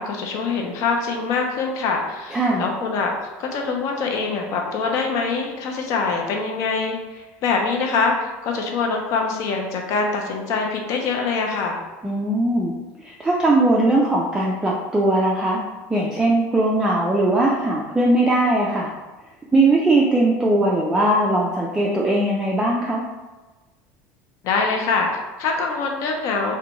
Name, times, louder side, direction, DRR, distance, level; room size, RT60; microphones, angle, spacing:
voice 1, 0.0-3.1 3.4-11.8 24.4-26.6, left 4 dB, 55° left, 1 dB, 0.5 m, -24 dB
voice 2, 2.3-2.7 12.0-12.7 13.0-15.6 15.9-18.9 19.5-23.0, right 2 dB, 10° right, -3 dB, 0.3 m, -19 dB
2.5 x 2.2 x 2.9 m, 1.2 s
supercardioid pair, 125°, 6 cm